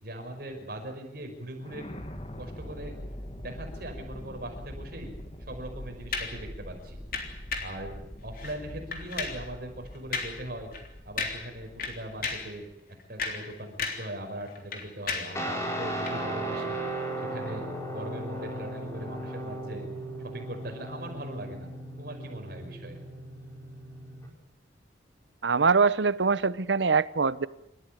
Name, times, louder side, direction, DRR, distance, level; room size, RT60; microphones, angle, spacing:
voice 1, 0.0-1.9 2.3-2.9 3.4-5.1 5.4-7.0 7.6-7.9 8.2-10.7 11.0-12.6 13.1-16.8 17.2-19.9 20.2-21.7 22.0-23.0, right 1 dB, 55° right, 3 dB, 5.6 m, -40 dB
sound 1, 1.6-12.7, equal, 35° left, 1.9 m, -43 dB
sound 2, 6.1-6.4 7.1-7.8 8.4-8.6 8.9-9.5 10.1-10.4 10.7-10.9 11.2-11.5 11.8-12.5 13.0-14.1 14.4-15.4 16.0-16.2, left 5 dB, 50° left, 3.3 m, -34 dB
Guitar, 15.3-24.3, right 1 dB, 15° left, 4.6 m, -36 dB
voice 2, 25.4-27.5, right 4 dB, 75° right, 17 dB, 0.8 m, -23 dB
27.5 x 13.5 x 9.3 m, 0.85 s
head